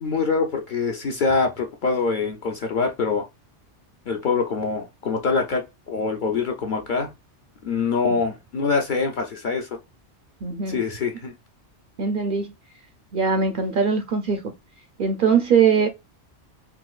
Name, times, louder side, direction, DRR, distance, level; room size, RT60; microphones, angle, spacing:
voice 1, 0.0-3.2 4.1-7.1 7.6-9.7 10.7-11.3, left 4 dB, 55° left, 0.6 m, -24 dB
voice 2, 10.4-10.8 12.0-12.5 13.1-14.4 15.0-15.9, right 6 dB, 60° right, 0.6 m, -21 dB
3.7 x 2.4 x 2.3 m
omnidirectional pair, 1.2 m